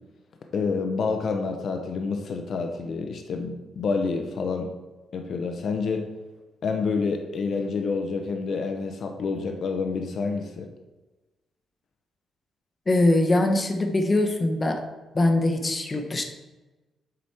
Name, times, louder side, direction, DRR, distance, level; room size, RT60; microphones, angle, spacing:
voice 1, 0.5-4.7 5.1-6.0 6.6-10.7, left 4 dB, 55° left, 4 dB, 0.7 m, -28 dB
voice 2, 12.9-14.8 15.1-16.2, left 2 dB, 25° left, 5 dB, 0.9 m, -22 dB
7.8 x 5.0 x 4.3 m, 1.1 s
cardioid pair, 135°, 0 cm